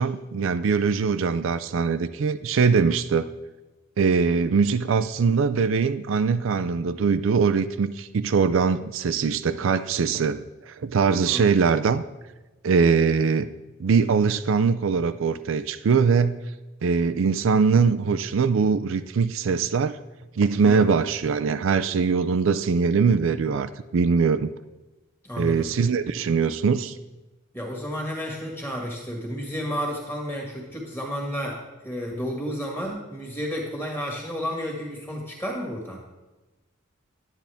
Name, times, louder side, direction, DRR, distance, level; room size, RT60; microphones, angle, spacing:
voice 1, 0.0-3.3 4.0-12.0 12.6-13.5 13.8-16.3 16.8-20.0 20.4-24.5 25.4-27.0, right 5 dB, 70° right, 10 dB, 0.4 m, -22 dB
voice 2, 20.6-20.9 25.2-25.7 27.5-36.0, equal, 10° left, -1 dB, 1.9 m, -31 dB
10.5 x 9.9 x 3.5 m, 1.1 s
head